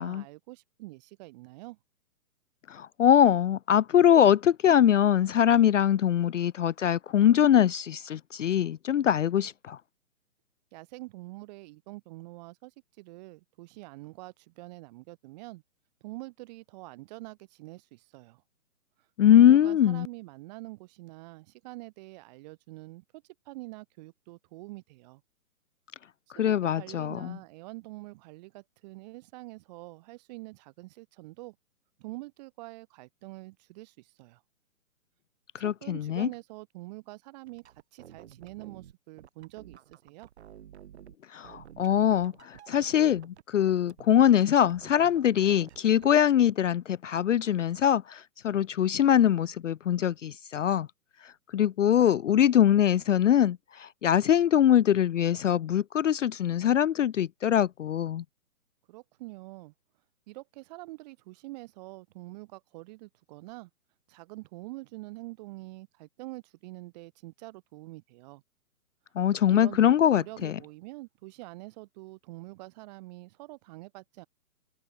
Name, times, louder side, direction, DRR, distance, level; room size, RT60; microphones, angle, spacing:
voice 1, 0.0-1.8 10.7-15.6 16.0-18.4 19.3-25.2 26.4-31.5 32.0-34.4 35.6-37.6 37.9-39.8 40.0-40.3 58.9-59.7 60.3-63.7 64.1-68.4 69.5-74.3, right 21 dB, 30° right, 5.1 m, -45 dB
voice 2, 2.7-9.8 19.2-20.1 26.4-27.4 35.5-36.3 41.3-50.9 51.2-58.2 69.2-70.6, left 10 dB, 55° left, 0.5 m, -23 dB
sound 1, 37.5-41.2 41.4-43.4 43.7-46.2, right 10 dB, 45° right, 6.5 m, -51 dB
hypercardioid pair, 155°, 45 cm